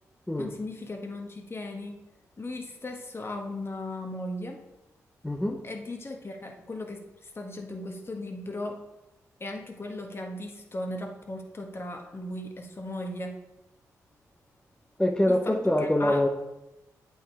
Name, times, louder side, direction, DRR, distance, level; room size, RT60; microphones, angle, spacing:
voice 1, 0.4-2.0 2.4-4.6 5.6-8.8 9.4-13.4 15.3-16.2, left 1 dB, 40° left, 3 dB, 1.5 m, -37 dB
voice 2, 5.2-5.6 15.0-16.3, left 1 dB, 10° left, 2 dB, 0.9 m, -24 dB
8.1 x 5.7 x 4.7 m, 0.94 s
supercardioid pair, 50°, 6 cm